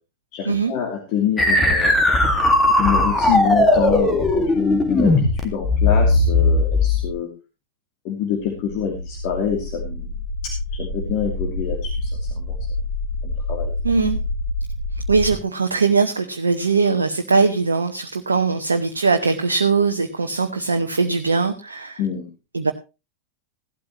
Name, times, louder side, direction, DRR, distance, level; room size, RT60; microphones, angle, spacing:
voice 1, 0.3-1.9 2.8-7.3 8.0-10.1 10.4-12.6 13.2-14.1 22.0-22.3, left 8 dB, 45° left, 2 dB, 2.6 m, -26 dB
sound 1, 1.4-7.1, left 2 dB, 10° left, 2.0 m, -17 dB
sound 2, 8.4-15.3, left 2 dB, 60° left, 5.8 m, -28 dB
voice 2, 13.8-14.2 15.1-22.0 22.5-22.7, right 4 dB, 75° right, 5 dB, 0.9 m, -20 dB
16.0 x 12.5 x 3.0 m, 0.28 s
figure-of-eight pair, 90°, 0 cm